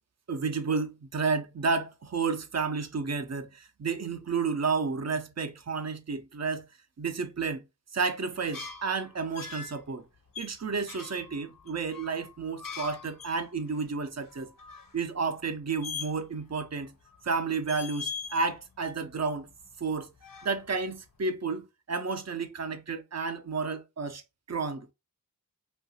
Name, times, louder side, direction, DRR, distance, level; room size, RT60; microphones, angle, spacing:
voice 1, 0.3-6.7 7.0-7.6 7.9-10.0 10.4-14.5 14.9-16.9 17.2-19.5 19.8-20.1 20.4-24.2 24.5-24.9, right 4 dB, 50° right, 0.6 m, -31 dB
sound 1, 8.3-9.8 10.3-13.4 13.7-13.8 14.1-15.0 15.8-16.5 16.8-17.3 17.6-18.5 18.8-19.9 20.2-20.9, left 6 dB, 75° left, 0.7 m, -42 dB
2.8 x 2.5 x 2.7 m
wide cardioid pair, 70°, 34 cm